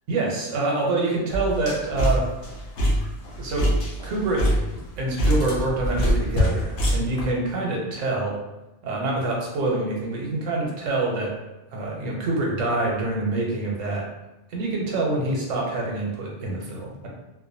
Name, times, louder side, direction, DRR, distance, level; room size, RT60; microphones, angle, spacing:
voice 1, 0.1-2.3 3.4-3.8 4.0-4.7 5.0-8.4 8.8-11.4 11.7-14.1 14.5-17.1, right 2 dB, 90° right, -2 dB, 1.0 m, -26 dB
sound 1, 1.3-7.3, equal, 60° left, 0.8 m, -24 dB
2.5 x 2.1 x 2.6 m, 1.0 s
omnidirectional pair, 1.2 m